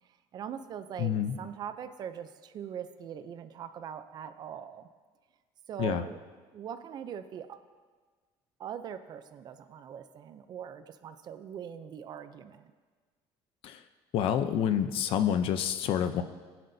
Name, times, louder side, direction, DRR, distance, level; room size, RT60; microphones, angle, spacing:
voice 1, 0.3-4.9 5.7-6.2 6.5-7.6 8.6-12.7, right 8 dB, 40° right, 11 dB, 0.5 m, -41 dB
voice 2, 1.0-1.4 5.8-6.0 13.6-13.8 14.1-16.2, left 9 dB, 60° left, 10 dB, 0.7 m, -28 dB
19.5 x 10.5 x 2.7 m, 1.4 s
cardioid pair, 160°, 11 cm